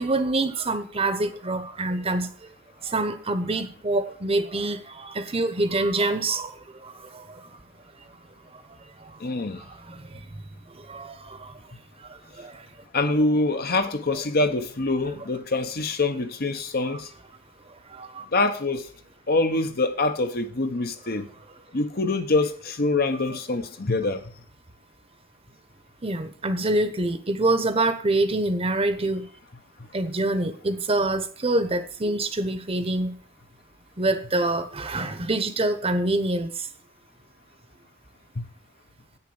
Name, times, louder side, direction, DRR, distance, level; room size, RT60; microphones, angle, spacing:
voice 1, 0.0-2.3 2.8-7.5 9.0-9.1 9.5-10.2 10.7-11.5 12.0-12.6 16.9-17.0 17.9-18.2 26.0-29.3 29.9-33.2 34.0-36.7, right 2 dB, 30° right, 1.0 m, -26 dB
voice 2, 9.2-9.6 12.9-17.1 18.3-18.9 19.3-21.3 21.7-24.2 38.4-38.5, left 2 dB, 50° left, 1.0 m, -25 dB
8.8 x 6.8 x 7.0 m
head